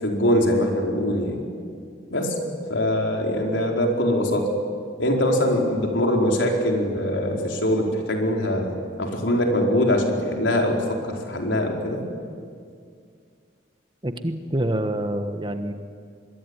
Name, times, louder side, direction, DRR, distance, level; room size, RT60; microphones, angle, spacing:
voice 1, 0.0-1.4 2.1-2.4 2.7-4.5 5.0-12.1, left 1 dB, 90° left, 1 dB, 4.7 m, -23 dB
voice 2, 14.0-15.7, right 1 dB, 25° right, 8 dB, 1.4 m, -26 dB
25.0 x 22.5 x 9.9 m, 2.2 s
head